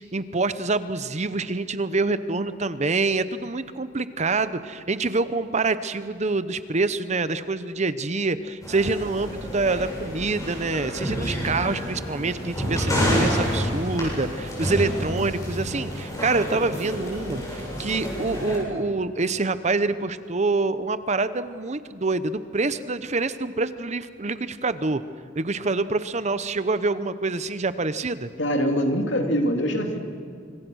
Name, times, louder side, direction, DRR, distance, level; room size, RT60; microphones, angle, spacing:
voice 1, 0.0-25.0 25.4-28.3, right 3 dB, 40° right, 13 dB, 0.8 m, -26 dB
sound 1, 8.6-18.6, equal, 20° left, 7.8 m, -28 dB
voice 2, 28.4-30.0, equal, 70° left, 4 dB, 2.6 m, -23 dB
25.5 x 24.0 x 6.3 m, 2.3 s
head